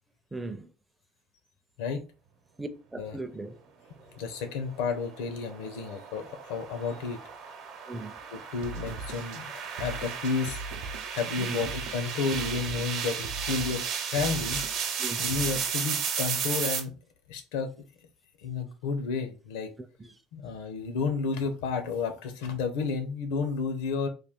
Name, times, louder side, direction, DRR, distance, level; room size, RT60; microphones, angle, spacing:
voice 1, 0.3-0.7 2.6-3.6 7.9-8.2 11.4-11.6 15.0-15.2 20.0-20.1, right 2 dB, 10° right, 0.4 m, -38 dB
voice 2, 4.2-7.2 8.3-10.6 11.1-14.6 15.2-16.9 17.3-17.7 18.4-19.7 20.3-24.1, left 5 dB, 90° left, 0.7 m, -31 dB
sound 1, 4.7-16.8, right 7 dB, 55° right, 0.8 m, -34 dB
sound 2, 8.6-15.9, right 3 dB, 85° right, 0.5 m, -41 dB
3.3 x 2.4 x 3.5 m
cardioid pair, 130°, 0 cm